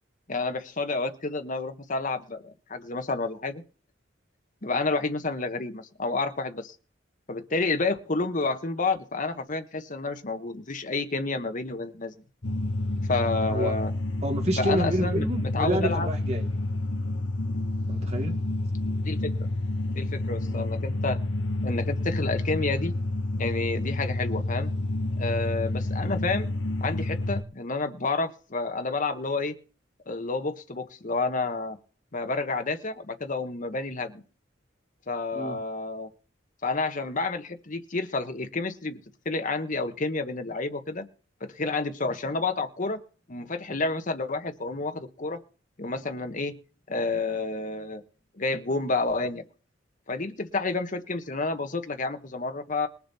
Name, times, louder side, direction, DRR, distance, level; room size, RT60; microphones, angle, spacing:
voice 1, 0.3-3.6 4.6-6.7 7.3-12.1 13.1-13.9 14.6-15.3 15.5-16.1 19.0-19.3 19.9-21.2 21.6-22.9 23.4-24.7 25.2-26.5 26.8-29.6 30.1-31.8 32.1-34.2 35.1-36.1 36.6-39.0 39.2-41.1 41.4-43.0 43.3-45.4 45.8-46.6 46.9-48.0 48.4-49.4 50.1-52.9, left 3 dB, 45° left, 7 dB, 1.3 m, -29 dB
sound 1, 12.4-27.4, left 2 dB, 70° left, 1.3 m, -29 dB
voice 2, 14.2-16.5 17.9-18.4 20.5-20.6 26.0-26.1 35.3-35.6, right 1 dB, 35° right, 4 dB, 2.2 m, -29 dB
21.5 x 7.1 x 4.2 m, 0.37 s
head